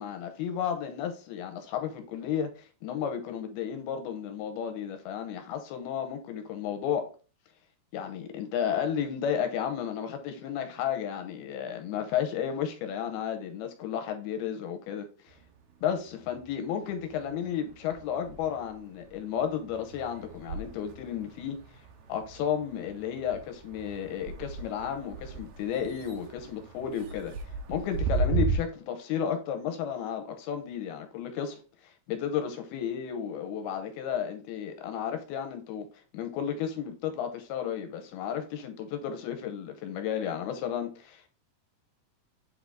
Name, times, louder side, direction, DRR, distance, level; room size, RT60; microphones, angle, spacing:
voice 1, 0.0-7.1 7.9-15.4 15.8-21.6 22.1-27.3 27.7-35.9 36.1-41.3, left 8 dB, 85° left, 2.7 m, -33 dB
sound 1, 15.3-16.5 16.9-28.6, right 4 dB, 85° right, 1.6 m, -36 dB
7.9 x 3.5 x 3.8 m
omnidirectional pair, 4.6 m